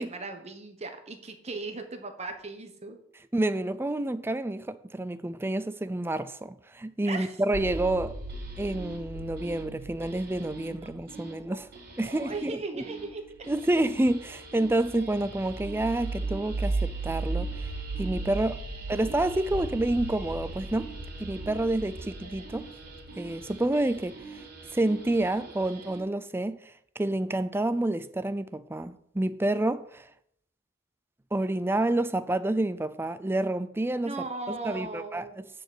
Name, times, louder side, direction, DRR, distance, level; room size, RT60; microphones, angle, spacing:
voice 1, 0.0-3.0 7.1-7.3 11.5-11.6 12.0-13.2 33.9-35.5, right 3 dB, 35° right, 1.3 m, -38 dB
voice 2, 3.3-8.2 8.6-11.7 12.0-12.6 13.5-17.7 18.0-18.6 18.9-20.9 21.2-22.7 23.2-24.4 24.7-30.1 31.3-34.2 34.5-35.4, right 1 dB, 10° right, 0.4 m, -29 dB
sound 1, 7.5-26.0, right 3 dB, 55° right, 4.3 m, -37 dB
10.5 x 5.1 x 8.0 m
head